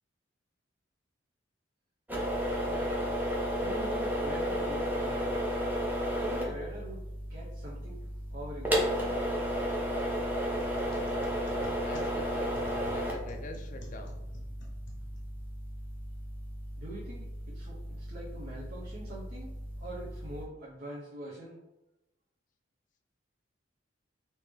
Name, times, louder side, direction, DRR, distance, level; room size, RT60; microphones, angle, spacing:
sound 1, 2.1-20.4, equal, 10° right, 0.5 m, -33 dB
voice 1, 3.6-5.4 6.1-7.0 7.3-9.2 16.8-21.6, right 1 dB, 55° right, -7 dB, 0.7 m, -43 dB
sound 2, 10.6-15.5, left 2 dB, 70° left, 0.8 m, -51 dB
voice 2, 11.8-12.5 12.9-14.2, left 2 dB, 40° left, 4 dB, 0.4 m, -45 dB
3.1 x 2.8 x 3.4 m, 0.94 s
head